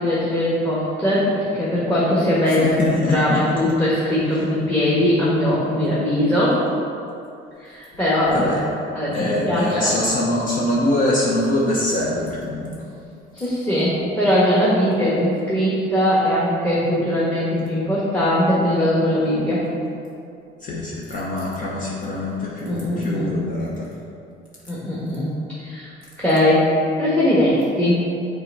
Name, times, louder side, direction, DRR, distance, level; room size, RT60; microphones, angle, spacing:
voice 1, 0.0-6.6 7.6-8.6 8.9-9.9 13.3-19.6 22.7-23.3 24.7-25.3 25.6-25.9 26.2-26.7 27.0-28.0, left 1 dB, 10° left, -8 dB, 1.3 m, -20 dB
voice 2, 2.5-3.4 4.3-4.4 8.3-8.6 9.1-12.8 20.6-23.9, left 1 dB, 45° left, -4 dB, 0.9 m, -23 dB
6.6 x 3.5 x 4.6 m, 2.5 s
cardioid pair, 125°, 19 cm